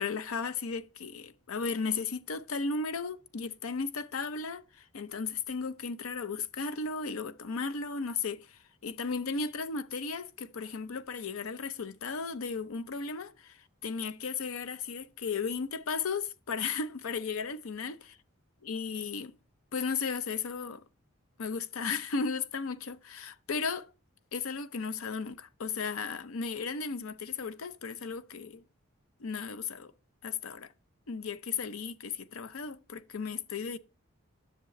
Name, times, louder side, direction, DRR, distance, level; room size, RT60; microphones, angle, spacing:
voice 1, 0.0-18.1 18.6-19.3 19.7-20.8 21.4-23.9 24.3-28.6 29.2-29.9 30.2-30.7 31.1-33.8, left 5 dB, 85° left, 0.6 m, -35 dB
10.0 x 6.8 x 3.1 m
head